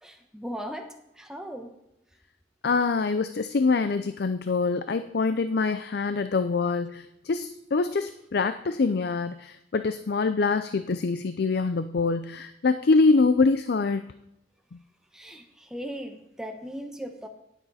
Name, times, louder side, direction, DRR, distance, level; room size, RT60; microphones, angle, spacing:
voice 1, 0.0-0.9 1.1-1.7 15.1-17.3, equal, 5° right, 4 dB, 1.1 m, -38 dB
voice 2, 2.6-14.1 14.7-14.8, left 4 dB, 60° left, 11 dB, 0.5 m, -25 dB
18.0 x 7.3 x 4.1 m, 0.83 s
head